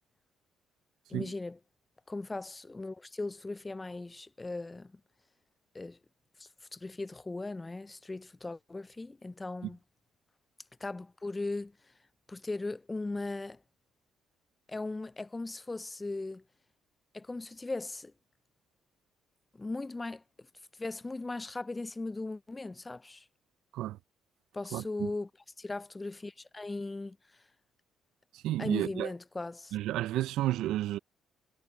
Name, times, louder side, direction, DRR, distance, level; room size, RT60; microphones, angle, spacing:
voice 1, 1.1-1.6 2.1-4.9 5.7-6.0 6.4-9.8 10.8-11.7 12.3-13.6 14.7-16.4 17.1-18.1 19.5-20.2 20.8-23.2 24.5-25.3 25.6-27.2 28.6-29.8, left 2 dB, 20° left, 0.4 m, -38 dB
voice 2, 24.7-25.1 28.4-29.1 29.7-31.0, right 14 dB, 75° right, 0.4 m, -31 dB
supercardioid pair, 60°, 0 cm